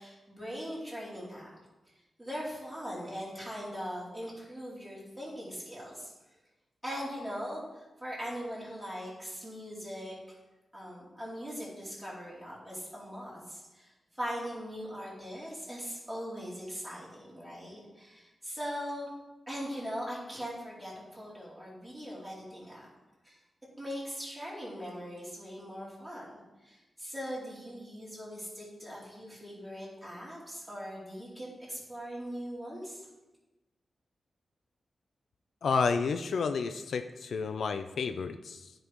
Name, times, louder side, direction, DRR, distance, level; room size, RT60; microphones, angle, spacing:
voice 1, 0.0-1.5 2.2-6.1 6.8-10.1 10.7-19.1 19.5-22.9 23.2-23.4 23.8-26.3 26.6-33.0, equal, 5° right, -7 dB, 2.9 m, -40 dB
voice 2, 35.6-38.7, left 5 dB, 70° left, 9 dB, 0.4 m, -31 dB
13.5 x 5.4 x 3.0 m, 1.1 s
wide cardioid pair, 160°, 0 cm